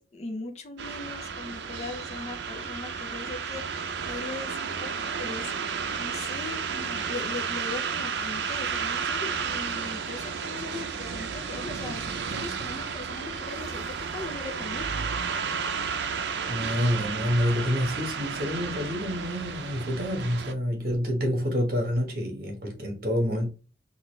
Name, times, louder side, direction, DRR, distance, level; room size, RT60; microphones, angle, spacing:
voice 1, 0.0-5.5 6.0-15.1, left 3 dB, 35° left, 0.6 m, -39 dB
sound 1, 0.8-20.5, right 6 dB, 75° right, 0.5 m, -32 dB
voice 2, 16.5-23.5, equal, 55° right, 1.3 m, -28 dB
3.9 x 2.4 x 3.2 m
head